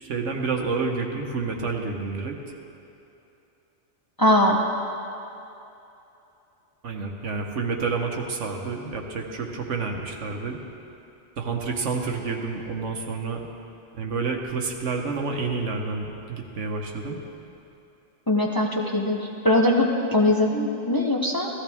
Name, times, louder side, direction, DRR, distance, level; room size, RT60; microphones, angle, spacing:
voice 1, 0.0-2.3 6.8-10.6 11.4-13.5 13.9-17.2, right 4 dB, 80° right, 2 dB, 1.4 m, -29 dB
voice 2, 4.2-4.6 18.3-21.5, left 1 dB, 20° left, 0 dB, 0.7 m, -21 dB
14.5 x 14.5 x 3.5 m, 2.8 s
omnidirectional pair, 1.2 m